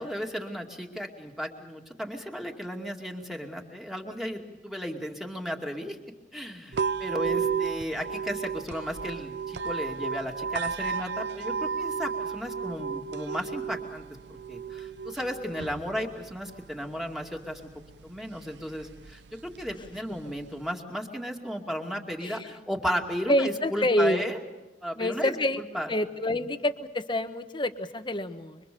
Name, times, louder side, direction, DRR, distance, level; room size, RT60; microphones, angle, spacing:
voice 1, 0.0-6.0 6.3-14.0 14.3-17.6 18.0-24.4 24.8-25.9, equal, ahead, 2 dB, 2.4 m, -34 dB
sound 1, 6.7-20.7, right 6 dB, 80° right, 0.7 m, -34 dB
voice 2, 23.3-24.2 25.0-25.6 25.9-28.6, left 1 dB, 25° left, 9 dB, 1.2 m, -27 dB
25.5 x 24.5 x 6.9 m, 1.1 s
head